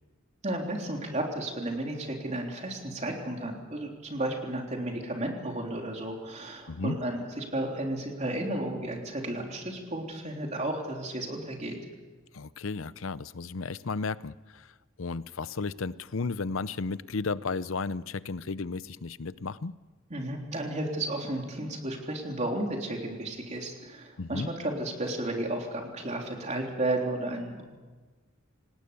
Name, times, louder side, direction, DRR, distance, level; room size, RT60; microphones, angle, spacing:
voice 1, 0.4-11.8 20.1-27.6, right 1 dB, 35° right, 1 dB, 3.6 m, -33 dB
voice 2, 12.3-14.7 15.0-19.8 24.2-24.5, left 4 dB, 75° left, 16 dB, 0.7 m, -34 dB
27.0 x 19.0 x 7.0 m, 1.3 s
head